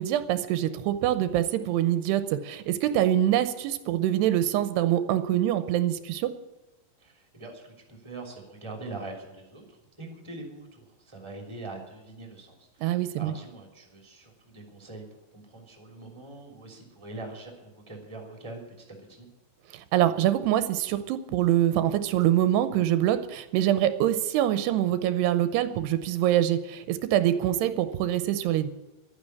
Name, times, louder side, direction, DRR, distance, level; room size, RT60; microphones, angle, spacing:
voice 1, 0.0-6.3 12.8-13.3 19.7-28.7, right 12 dB, 85° right, 12 dB, 2.8 m, -25 dB
voice 2, 7.0-15.0 15.3-19.3, right 2 dB, 10° right, 3 dB, 2.5 m, -43 dB
12.0 x 9.9 x 9.7 m, 1.1 s
omnidirectional pair, 4.8 m